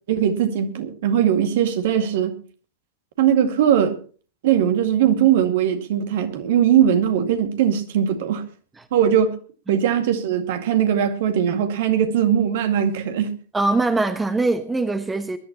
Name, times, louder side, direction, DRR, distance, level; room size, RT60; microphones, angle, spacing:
voice 1, 0.1-2.4 3.2-4.0 4.4-8.4 8.9-9.3 9.7-13.3, right 9 dB, 55° right, 2.2 m, -20 dB
voice 2, 13.5-15.4, right 2 dB, 10° right, 1.2 m, -22 dB
22.5 x 12.0 x 3.0 m
figure-of-eight pair, 100°, 0 cm